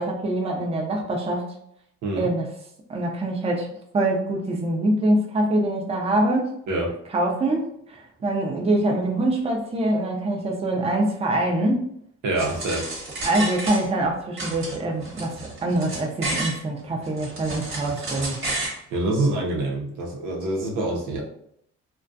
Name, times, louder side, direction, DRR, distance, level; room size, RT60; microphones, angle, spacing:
voice 1, 0.0-1.5 2.2-2.5 2.9-6.5 7.1-11.9 13.2-18.4, right 1 dB, 20° right, 0 dB, 0.5 m, -24 dB
voice 2, 6.7-7.0 12.2-12.9 18.9-21.2, right 2 dB, 80° right, -1 dB, 0.7 m, -25 dB
sound 1, 12.4-14.1 14.4-16.6 17.0-18.8, right 2 dB, 45° right, 1.1 m, -31 dB
2.3 x 2.2 x 2.5 m, 0.71 s
cardioid pair, 90°, 30 cm